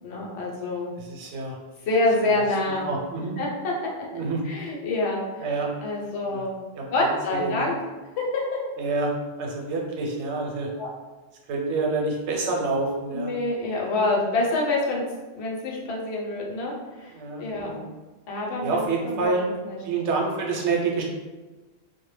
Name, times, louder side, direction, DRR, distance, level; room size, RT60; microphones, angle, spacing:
voice 1, 0.0-0.9 1.9-2.9 3.4-3.7 4.4-5.5 5.8-6.6 6.9-7.8 8.2-8.6 10.8-10.9 13.1-15.0 15.3-17.1 17.4-17.8 18.3-19.3 19.7-19.8, left 2 dB, 75° left, -2 dB, 0.9 m, -26 dB
voice 2, 1.0-1.6 2.2-2.3 2.9-3.4 4.1-4.4 5.4-5.7 6.2-6.4 6.7-7.8 8.8-9.1 9.4-10.7 11.5-13.3 17.1-17.8 18.6-19.4 19.8-21.0, right 3 dB, 90° right, -1 dB, 0.9 m, -27 dB
2.1 x 2.0 x 3.1 m, 1.2 s
omnidirectional pair, 1.1 m